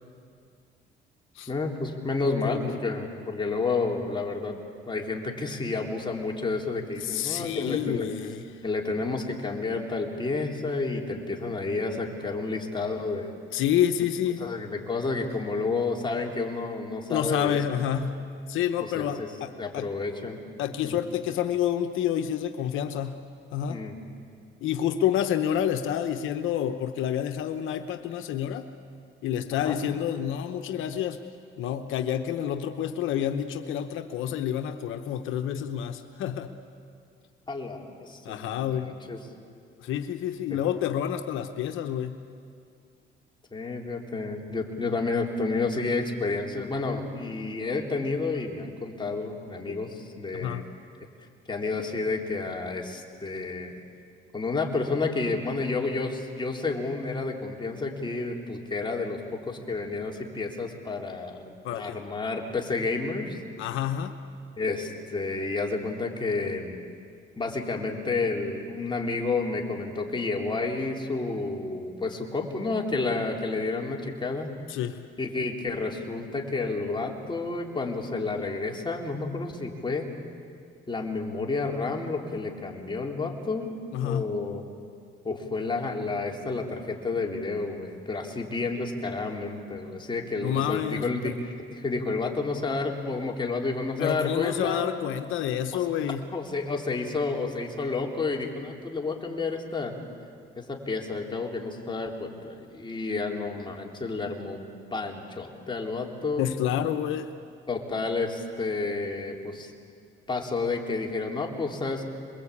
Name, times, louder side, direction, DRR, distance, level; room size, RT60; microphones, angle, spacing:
voice 1, 1.5-4.6 4.9-8.1 8.6-13.3 14.4-17.6 18.8-19.3 19.6-20.5 20.8-20.9 23.7-23.9 29.6-29.8 37.5-39.2 40.5-40.6 43.5-50.6 51.5-53.8 54.3-63.4 64.6-66.8 67.4-74.5 75.2-80.1 80.9-83.7 84.0-84.6 85.2-94.9 95.7-95.8 96.3-99.9 100.6-106.5 107.7-109.7 110.3-112.0, left 3 dB, 25° left, 0 dB, 3.8 m, -30 dB
voice 2, 2.3-2.7 7.0-8.4 13.5-14.5 17.1-18.2 18.5-19.9 20.6-23.2 23.5-23.8 24.6-28.7 29.2-31.2 31.6-36.5 38.2-38.9 39.8-42.2 50.3-50.6 61.6-62.0 63.6-64.1 74.7-75.0 83.9-84.3 90.4-91.4 94.0-96.3 106.4-107.3, left 10 dB, 85° left, 7 dB, 1.1 m, -28 dB
27.0 x 22.0 x 8.6 m, 2.3 s
cardioid pair, 90°, 20 cm